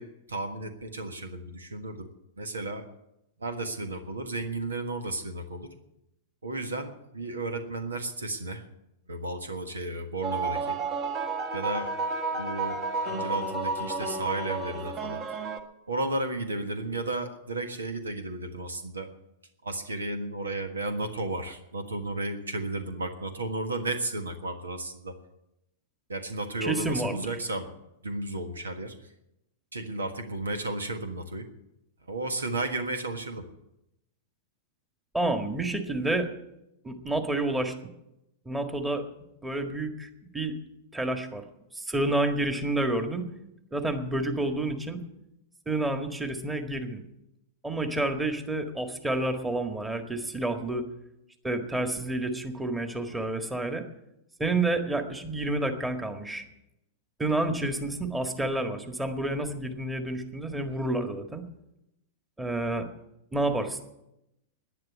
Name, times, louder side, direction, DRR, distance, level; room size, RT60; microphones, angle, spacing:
voice 1, 0.0-2.1 2.4-2.9 3.4-5.7 6.4-8.6 9.1-10.8 11.5-11.9 12.3-15.2 15.9-19.1 19.6-25.2 26.1-27.7 28.0-29.0 29.7-31.5 32.1-33.5, right 2 dB, 90° right, 8 dB, 1.5 m, -33 dB
sound 1, 10.2-15.6, right 3 dB, 35° right, 1.8 m, -31 dB
voice 2, 26.6-27.3 35.1-36.3 36.8-37.7 38.5-39.1 39.4-40.6 40.9-41.4 41.7-43.3 43.7-45.0 45.7-47.0 47.6-50.8 51.4-53.8 54.4-56.5 57.2-61.5 62.4-62.9 63.3-63.8, right 2 dB, 10° right, 5 dB, 1.7 m, -29 dB
11.0 x 10.0 x 9.8 m, 0.87 s
hypercardioid pair, 105°, 0 cm